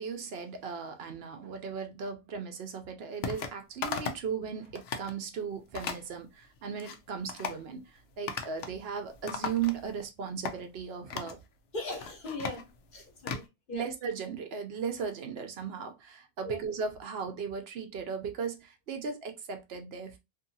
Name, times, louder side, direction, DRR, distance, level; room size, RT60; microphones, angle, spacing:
voice 1, 0.0-11.4 13.7-20.2, right 6 dB, 75° right, 0.9 m, -37 dB
sound 1, 3.2-3.5 3.8-4.3 4.6-5.1 5.7-6.0 6.6-7.0 7.3-7.6 8.3-8.8 9.0-10.0 10.4-10.6 11.1-11.4 11.9-13.5, left 6 dB, 80° left, 0.8 m, -37 dB
voice 2, 11.7-13.9 16.4-16.6, left 2 dB, 55° left, 1.2 m, -39 dB
2.7 x 2.7 x 2.6 m
omnidirectional pair, 1.0 m